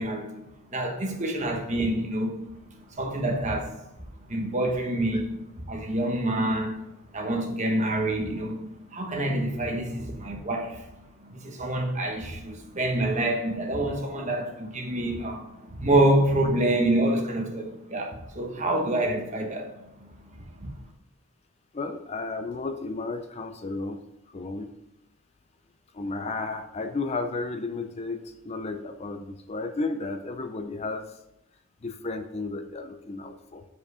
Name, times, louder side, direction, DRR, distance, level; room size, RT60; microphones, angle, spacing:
voice 1, 0.0-3.8 4.3-6.8 7.1-10.9 11.2-19.7 20.0-20.1 20.6-20.7, right 1 dB, 35° right, 1.1 m, -27 dB
voice 2, 21.7-24.0 24.3-24.7 25.9-31.1 31.8-33.6, left 3 dB, 30° left, 0.5 m, -33 dB
7.5 x 5.0 x 4.8 m
head